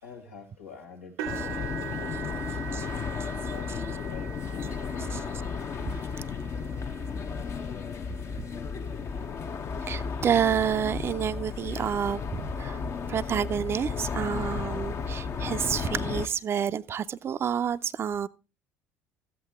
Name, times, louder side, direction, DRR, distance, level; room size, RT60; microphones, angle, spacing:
voice 1, 0.0-3.1 3.4-5.4, left 5 dB, 90° left, 1.9 m, -47 dB
sound 1, 1.2-9.2 9.8-10.1 10.5-10.6 12.0-12.1, right 10 dB, 70° right, 0.7 m, -42 dB
sound 2, 1.3-16.3, left 5 dB, 45° left, 0.8 m, -34 dB
voice 2, 9.8-12.8 13.1-18.3, right 8 dB, 40° right, 0.4 m, -29 dB
13.5 x 8.2 x 3.5 m
hypercardioid pair, 65°, 7 cm